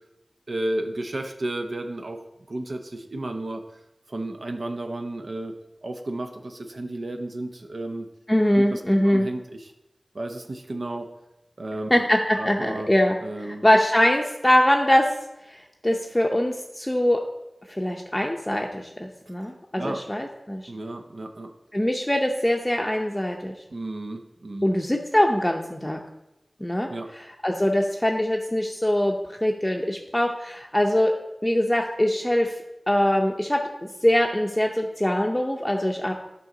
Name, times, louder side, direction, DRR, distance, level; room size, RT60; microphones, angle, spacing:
voice 1, 0.5-3.8 4.1-5.5 5.8-8.1 8.6-9.7 10.1-11.1 11.6-12.1 12.3-12.9 13.2-13.6 19.7-20.0 20.7-21.5 23.7-24.7 26.9-27.1, right 1 dB, 65° right, 4 dB, 0.6 m, -33 dB
voice 2, 8.3-9.3 11.9-13.1 13.4-15.1 15.5-17.2 17.7-20.6 21.7-23.5 24.6-26.0 26.6-26.9 27.4-31.1 31.4-32.6 32.9-36.1, left 1 dB, 15° left, 1 dB, 0.6 m, -22 dB
9.3 x 5.4 x 3.8 m, 0.91 s
wide cardioid pair, 70°, 0 cm